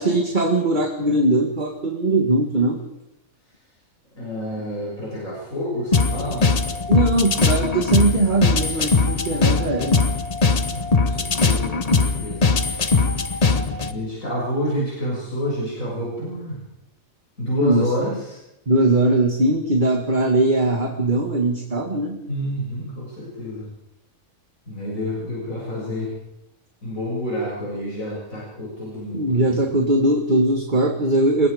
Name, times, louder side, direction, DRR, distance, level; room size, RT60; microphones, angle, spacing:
voice 1, 0.0-2.8 6.9-10.0 17.6-17.9 18.7-22.2 29.1-31.5, right 2 dB, 35° right, 3 dB, 2.0 m, -20 dB
voice 2, 4.2-6.5 10.6-12.5 13.9-16.6 17.4-18.4 22.3-23.7 24.7-26.1 26.8-29.5, equal, 75° left, -5 dB, 7.3 m, -28 dB
sound 1, 5.9-13.9, left 4 dB, 30° left, 1.1 m, -20 dB
27.0 x 22.0 x 5.1 m, 0.90 s
omnidirectional pair, 1.4 m